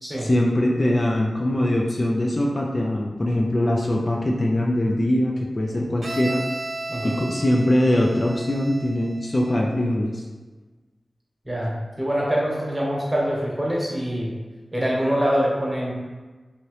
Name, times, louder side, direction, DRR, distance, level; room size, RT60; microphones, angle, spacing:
voice 1, 0.2-6.6 7.0-10.2, left 1 dB, 40° left, -1 dB, 0.3 m, -22 dB
Bowed string instrument, 6.0-9.8, right 2 dB, 55° right, 0.5 m, -34 dB
voice 2, 12.0-14.3 14.7-15.9, equal, 15° right, -5 dB, 1.1 m, -24 dB
2.8 x 2.8 x 3.0 m, 1.3 s
wide cardioid pair, 70°, 0 cm